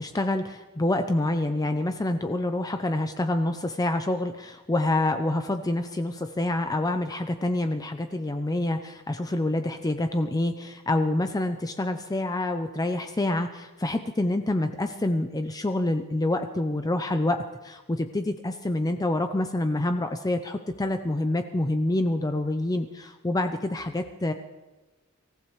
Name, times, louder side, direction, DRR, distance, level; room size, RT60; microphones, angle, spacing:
voice 1, 0.0-24.3, left 1 dB, 15° left, 7 dB, 0.6 m, -27 dB
25.0 x 15.5 x 3.2 m, 1.2 s
head